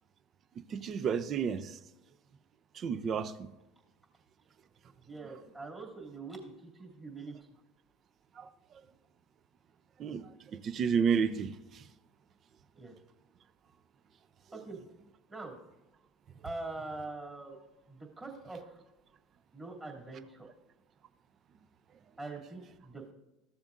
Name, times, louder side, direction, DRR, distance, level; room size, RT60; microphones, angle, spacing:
voice 1, 0.7-1.6 2.8-3.3 8.4-8.5 10.0-10.3 10.6-11.5, right 6 dB, 40° right, 13 dB, 0.6 m, -30 dB
voice 2, 5.1-7.4 12.8-13.0 14.5-14.8 15.3-15.5 16.4-17.6 17.9-18.8 19.5-20.5 22.2-23.1, right 3 dB, 20° right, -2 dB, 2.7 m, -43 dB
14.5 x 7.1 x 2.6 m, 0.98 s
hypercardioid pair, 80°, 0 cm